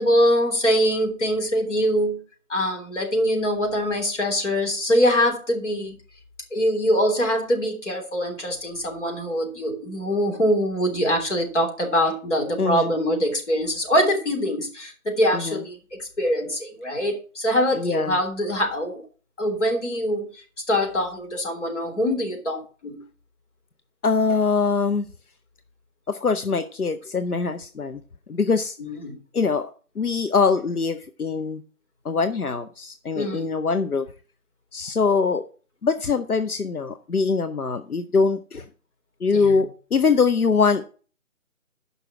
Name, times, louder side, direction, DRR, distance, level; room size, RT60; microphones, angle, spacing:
voice 1, 0.0-2.2 2.5-5.9 6.5-19.0 19.4-23.0 28.8-29.2 33.1-33.5 39.3-39.6, equal, 55° left, 3 dB, 3.4 m, -23 dB
voice 2, 12.6-12.9 15.3-15.6 17.7-18.2 24.0-25.1 26.1-28.0 28.3-28.8 29.3-31.6 32.0-34.1 34.7-35.4 35.8-38.6 39.2-40.9, left 5 dB, 90° left, 9 dB, 0.9 m, -23 dB
9.6 x 5.8 x 5.8 m, 0.38 s
figure-of-eight pair, 160°, 43 cm